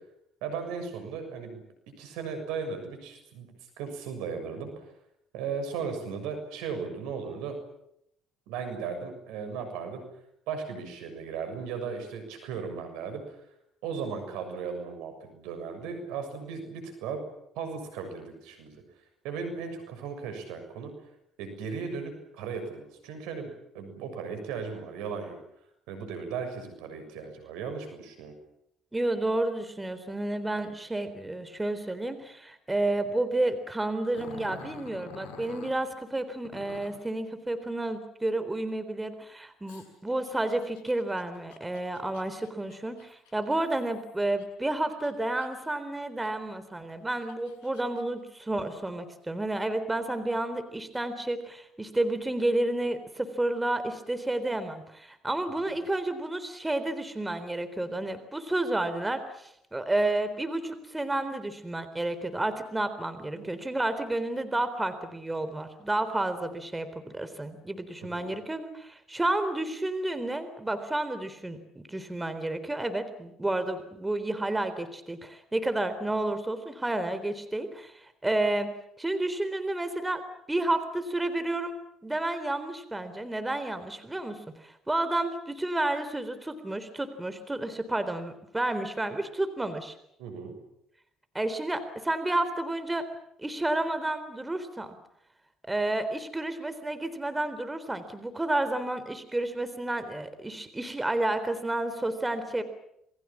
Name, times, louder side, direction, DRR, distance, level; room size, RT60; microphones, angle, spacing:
voice 1, 0.4-1.6 2.0-3.5 3.8-4.9 5.3-7.6 8.5-10.0 10.5-13.4 13.8-17.2 17.5-18.8 19.2-20.9 21.4-25.4 25.9-28.3 55.7-55.8 63.3-63.5 68.0-68.3 90.2-90.5, right 5 dB, 75° right, 7 dB, 6.9 m, -36 dB
voice 2, 28.9-66.9 67.1-78.7 79.0-80.2 80.5-81.8 82.0-84.4 84.6-90.0 91.3-93.1 93.4-95.0 95.6-102.6, right 2 dB, 15° right, 10 dB, 3.8 m, -31 dB
Growling, 34.1-35.8 36.4-37.0 39.7-44.4 44.9-45.7 46.2-46.3 47.0-48.0, left 6 dB, 80° left, 7.6 m, -48 dB
28.5 x 22.0 x 7.4 m, 0.77 s
hypercardioid pair, 60°, 0 cm